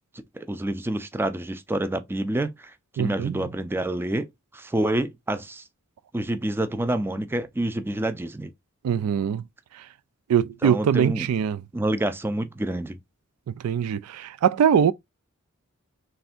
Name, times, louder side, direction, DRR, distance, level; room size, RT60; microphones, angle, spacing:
voice 1, 0.3-4.3 4.5-5.6 6.1-8.5 10.6-11.3 11.7-13.0, right 1 dB, 10° right, 0.4 m, -28 dB
voice 2, 3.0-3.4 8.8-9.4 9.7-9.8 10.3-11.6 13.5-14.9, right 8 dB, 85° right, 0.3 m, -22 dB
3.4 x 2.5 x 4.2 m
head